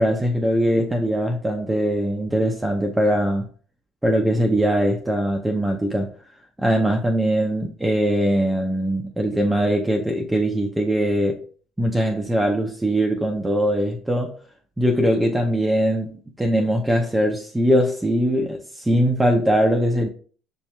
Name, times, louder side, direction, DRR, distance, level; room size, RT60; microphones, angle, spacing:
voice 1, 0.0-3.5 4.0-6.1 6.6-11.4 11.8-14.4 14.8-20.1, equal, 10° right, 0.5 m, -21 dB
6.1 x 2.8 x 2.2 m
hypercardioid pair, 65°, 0 cm